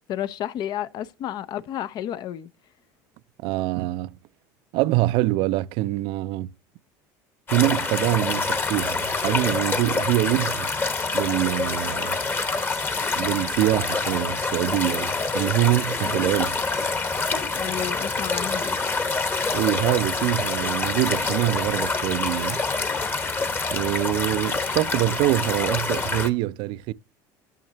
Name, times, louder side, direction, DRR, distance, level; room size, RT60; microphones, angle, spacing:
voice 1, 0.1-2.5 17.5-18.8, left 11 dB, 50° left, 0.5 m, -31 dB
voice 2, 3.4-4.1 4.7-6.5 7.5-10.7 11.1-12.2 13.2-15.1 15.3-16.6 19.5-22.6 23.7-26.9, right 17 dB, 65° right, 0.4 m, -24 dB
sound 1, 7.5-26.3, left 3 dB, 25° left, 1.1 m, -26 dB
9.1 x 6.3 x 2.8 m
supercardioid pair, 110°, 9 cm